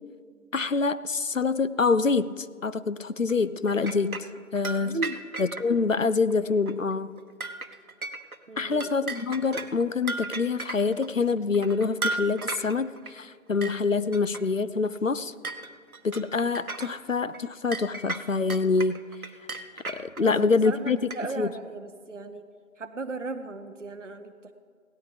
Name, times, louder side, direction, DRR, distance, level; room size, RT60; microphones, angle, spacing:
voice 1, 0.5-4.2 4.5-5.0 5.4-7.1 8.6-15.3 16.0-19.0 19.9-21.5, left 4 dB, 65° left, 15 dB, 0.5 m, -26 dB
sound 1, 3.3-5.7 6.3-6.4 6.7-6.9 7.2-8.4 8.7-11.1 11.5-13.1 13.6-13.8 14.1-14.4 14.8-14.9 15.4-17.0 17.3-17.4 17.7-20.2 20.6-21.5, right 3 dB, 80° right, 1.0 m, -35 dB
voice 2, 4.8-5.2 8.5-8.9 20.2-22.4 22.8-24.5, right 3 dB, 55° right, 7 dB, 0.7 m, -36 dB
17.5 x 13.5 x 3.4 m, 2.1 s
figure-of-eight pair, 170°, 43 cm